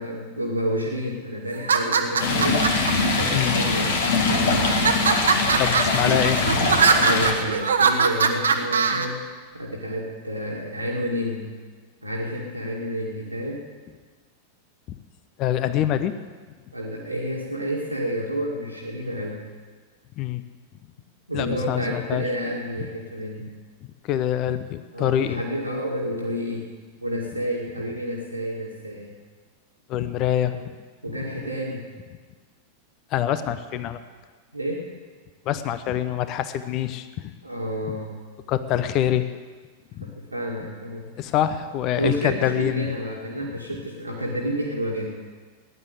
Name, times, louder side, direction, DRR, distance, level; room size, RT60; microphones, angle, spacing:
voice 1, 0.0-2.7 3.1-4.8 6.9-9.3 9.5-11.5 12.0-13.6 16.7-19.4 21.3-23.5 24.9-26.7 27.0-29.1 30.5-30.7 31.0-31.9 34.5-34.9 37.4-38.1 40.0-41.1 42.0-45.2, equal, 85° right, -3 dB, 2.2 m, -30 dB
sound 1, 1.5-2.9 3.6-4.2 4.6-9.1, right 6 dB, 70° right, 1.2 m, -21 dB
Stream, 2.2-7.3, left 3 dB, 60° left, 2.5 m, -22 dB
voice 2, 5.6-6.4 15.4-16.1 20.2-20.4 21.3-22.2 24.0-25.4 29.9-30.6 33.1-34.0 35.5-37.3 38.5-39.3 40.0-40.1 41.2-42.9, left 11 dB, 40° left, 12 dB, 0.8 m, -25 dB
16.0 x 10.5 x 8.3 m, 1.5 s
figure-of-eight pair, 90°, 0 cm